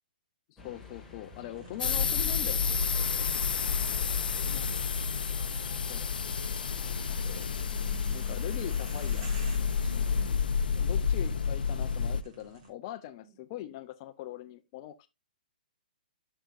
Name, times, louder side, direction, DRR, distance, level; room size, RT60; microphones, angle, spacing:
voice 1, 0.5-3.4 5.9-6.1 7.2-7.5 8.1-9.3 10.8-15.1, left 13 dB, 35° left, 0.5 m, -42 dB
sound 1, 0.6-10.3, left 2 dB, 5° left, 1.9 m, -50 dB
sound 2, 1.5-12.7, right 3 dB, 45° right, 4.2 m, -53 dB
sound 3, 1.8-12.2, left 6 dB, 85° left, 0.5 m, -30 dB
voice 2, 3.8-5.2 6.6-7.3 9.8-10.4, right 2 dB, 25° right, 1.9 m, -53 dB
10.0 x 6.4 x 2.5 m
hypercardioid pair, 145°, 5 cm